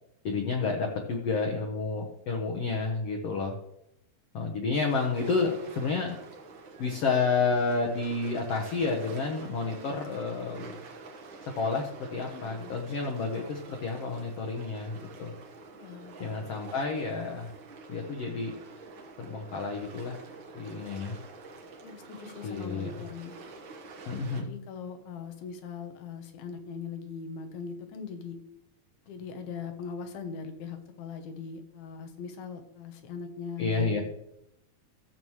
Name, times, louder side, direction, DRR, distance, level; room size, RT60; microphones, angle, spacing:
voice 1, 0.2-3.6 4.3-6.2 6.8-10.7 11.6-15.3 16.2-17.5 17.9-18.6 19.2-20.2 20.5-21.2 22.4-22.9 24.0-24.5 33.6-34.0, left 4 dB, 70° left, 1 dB, 1.5 m, -30 dB
sound 1, 4.9-24.4, right 3 dB, 75° right, 1.1 m, -47 dB
voice 2, 12.3-12.8 15.7-16.1 21.8-23.4 24.3-28.4 29.1-34.0, left 6 dB, 85° left, 6 dB, 2.9 m, -40 dB
14.5 x 7.2 x 3.2 m, 0.79 s
omnidirectional pair, 4.2 m